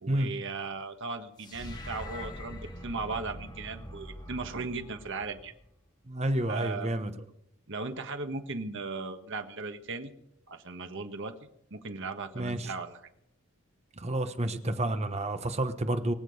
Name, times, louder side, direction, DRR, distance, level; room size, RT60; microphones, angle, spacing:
voice 1, 0.0-5.5 6.5-7.0 7.7-10.1 10.5-13.0, right 3 dB, 60° right, 6 dB, 1.5 m, -37 dB
sound 1, 1.4-5.8, equal, 20° left, 1.8 m, -43 dB
voice 2, 6.1-7.1 12.4-12.7 14.0-16.1, right 1 dB, 30° right, 8 dB, 1.2 m, -30 dB
22.5 x 7.7 x 6.5 m, 0.77 s
head